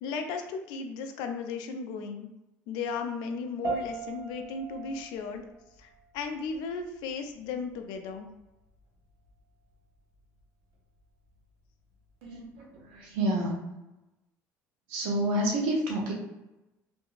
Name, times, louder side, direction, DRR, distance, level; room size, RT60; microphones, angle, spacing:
voice 1, 0.0-2.3 2.7-5.4 5.8-5.9 6.1-8.3, left 5 dB, 75° left, 6 dB, 0.4 m, -35 dB
sound 1, 3.6-13.2, right 4 dB, 55° right, 0.9 m, -43 dB
voice 2, 12.2-13.6 14.9-16.1, right 1 dB, 80° right, -1 dB, 0.9 m, -29 dB
2.7 x 2.6 x 2.5 m, 0.97 s
supercardioid pair, 80°, 7 cm